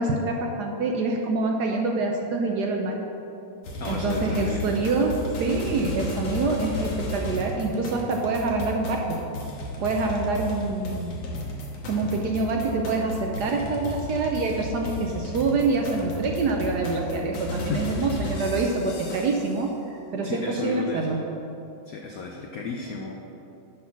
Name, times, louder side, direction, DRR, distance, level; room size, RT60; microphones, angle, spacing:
voice 1, 0.0-3.0 3.9-5.1 5.4-9.2 9.8-11.2 11.9-21.2, right 3 dB, 70° right, 1 dB, 1.0 m, -26 dB
sound 1, 3.6-19.6, left 1 dB, 70° left, 1.9 m, -34 dB
voice 2, 3.8-4.7 17.7-18.1 20.2-21.2 21.9-23.1, left 4 dB, 90° left, 1 dB, 0.7 m, -33 dB
10.0 x 4.2 x 5.9 m, 2.9 s
omnidirectional pair, 2.3 m